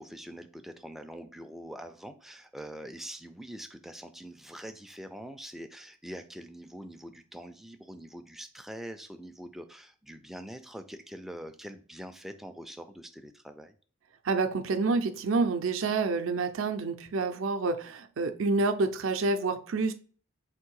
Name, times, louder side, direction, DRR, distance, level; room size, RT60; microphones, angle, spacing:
voice 1, 0.0-13.7, equal, ahead, 7 dB, 0.3 m, -44 dB
voice 2, 14.2-19.9, right 3 dB, 75° right, 8 dB, 0.5 m, -28 dB
3.6 x 2.7 x 4.6 m, 0.42 s
head